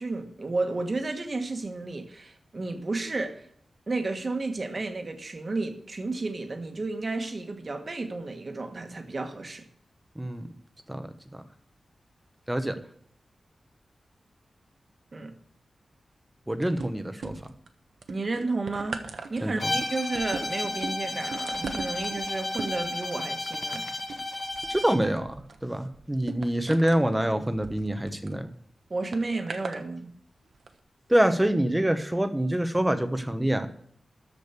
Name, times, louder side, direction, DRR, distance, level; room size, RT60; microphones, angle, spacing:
voice 1, 0.0-3.4 3.9-9.6 15.1-15.3 18.1-19.0 19.3-23.9 28.9-30.1, right 3 dB, 35° right, 1.5 m, -32 dB
voice 2, 10.2-10.5 10.9-11.1 11.3-11.4 12.5-12.8 16.5-17.3 19.4-19.7 24.7-28.5 31.1-33.7, right 1 dB, 10° right, 1.0 m, -26 dB
sound 1, 16.6-17.7 18.0-28.4 29.1-29.8 30.5-30.7, right 4 dB, 70° right, 1.2 m, -40 dB
Bowed string instrument, 19.6-25.1, left 2 dB, 30° left, 1.7 m, -32 dB
13.5 x 5.1 x 8.2 m
wide cardioid pair, 160°, 0 cm